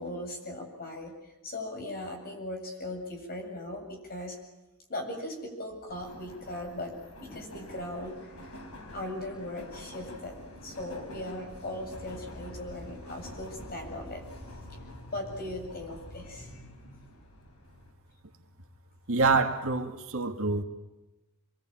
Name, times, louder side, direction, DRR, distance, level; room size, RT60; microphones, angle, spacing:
voice 1, 0.0-4.4 4.9-6.9 7.2-8.3 8.9-17.2, left 1 dB, 45° left, 7.9 m, -39 dB
Subway metro underground, 5.9-17.9, left 1 dB, 80° left, 5.4 m, -48 dB
voice 2, 19.1-20.6, right 4 dB, 65° right, 2.3 m, -26 dB
27.5 x 23.0 x 9.1 m
head